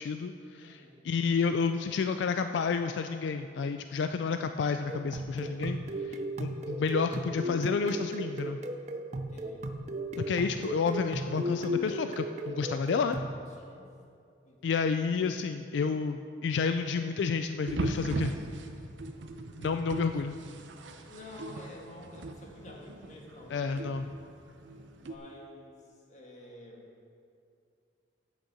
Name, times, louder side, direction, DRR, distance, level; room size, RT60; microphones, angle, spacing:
voice 1, 0.0-5.8 6.1-8.6 10.3-13.2 14.6-18.3 19.6-20.4 23.5-24.0, left 5 dB, 80° left, 8 dB, 0.3 m, -30 dB
voice 2, 0.6-1.0 9.1-9.7 13.5-13.9 14.4-14.6 21.0-23.9 25.0-26.9, left 2 dB, 40° left, -2 dB, 1.6 m, -49 dB
sound 1, 4.9-13.4, right 1 dB, 40° right, 0.5 m, -36 dB
sound 2, 17.7-25.2, right 2 dB, 90° right, 0.7 m, -39 dB
8.3 x 6.4 x 7.6 m, 2.4 s
head